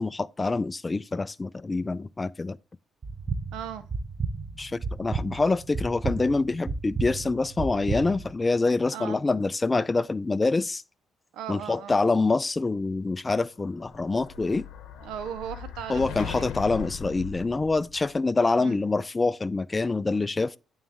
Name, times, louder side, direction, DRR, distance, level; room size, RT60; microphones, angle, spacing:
voice 1, 0.0-2.6 4.6-10.8 11.5-14.7 15.9-20.6, left 3 dB, 25° left, 0.3 m, -26 dB
sound 1, 3.0-8.3, right 4 dB, 30° right, 0.8 m, -33 dB
voice 2, 3.5-3.8 8.9-9.2 11.3-12.0 15.0-16.5 18.6-18.8, right 9 dB, 90° right, 0.6 m, -37 dB
Explosion, 13.5-18.2, left 7 dB, 85° left, 0.8 m, -39 dB
8.9 x 3.1 x 3.6 m
cardioid pair, 90°, 0 cm